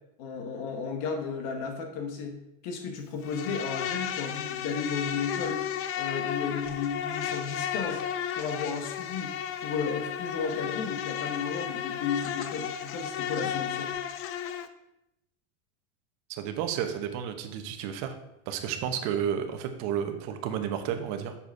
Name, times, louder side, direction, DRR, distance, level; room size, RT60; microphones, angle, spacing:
voice 1, 0.2-2.4 2.6-5.6 6.0-8.0 8.3-13.9, left 5 dB, 60° left, 5 dB, 1.3 m, -34 dB
Insect, 3.2-14.7, left 9 dB, 40° left, 0.6 m, -33 dB
voice 2, 16.3-18.1 18.5-21.4, right 8 dB, 55° right, 7 dB, 1.0 m, -31 dB
7.0 x 4.9 x 4.7 m, 0.85 s
supercardioid pair, 140°, 34 cm